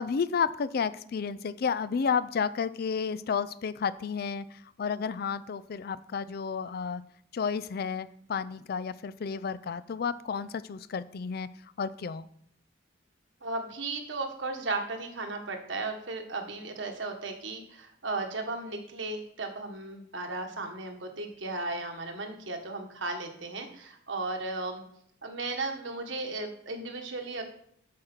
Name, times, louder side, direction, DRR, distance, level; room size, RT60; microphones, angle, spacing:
voice 1, 0.0-7.0 7.3-11.5 11.8-12.3, left 6 dB, 55° left, 16 dB, 0.4 m, -31 dB
voice 2, 13.4-24.8 25.2-27.4, right 3 dB, 75° right, 4 dB, 1.5 m, -35 dB
8.5 x 6.5 x 4.4 m, 0.66 s
head